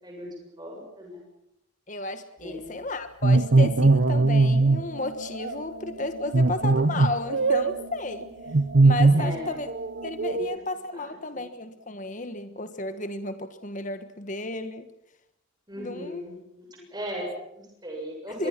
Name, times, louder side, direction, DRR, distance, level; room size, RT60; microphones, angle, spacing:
voice 1, 0.0-1.2 2.4-2.7 9.1-9.5 10.3-10.4 11.3-11.4 15.7-18.5, equal, 20° right, 0 dB, 7.2 m, -37 dB
voice 2, 1.9-8.3 8.8-9.7 10.0-14.9 15.8-16.2 16.8-16.9 18.3-18.5, left 2 dB, 40° left, 9 dB, 1.4 m, -33 dB
sound 1, 3.2-4.8 5.3-5.6 6.3-7.8 8.5-9.4 9.7-10.6, right 3 dB, 55° right, 0.7 m, -20 dB
sound 2, 3.3-10.4, right 1 dB, 80° right, 6.2 m, -42 dB
25.0 x 22.5 x 6.0 m, 0.83 s
head